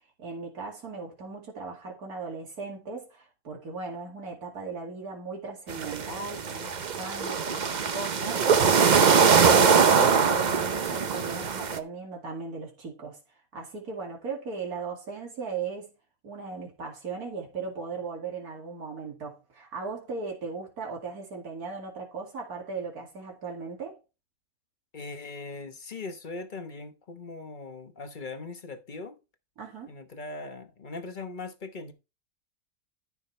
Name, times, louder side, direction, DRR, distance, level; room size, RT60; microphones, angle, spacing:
voice 1, 0.2-13.2 13.5-15.9 16.2-24.0 29.6-29.9, right 4 dB, 85° right, 2.8 m, -37 dB
sound 1, 5.7-11.8, right 6 dB, 40° right, 0.7 m, -22 dB
voice 2, 24.9-29.2 29.9-31.9, left 3 dB, 35° left, 1.0 m, -40 dB
13.5 x 6.1 x 3.2 m
omnidirectional pair, 1.6 m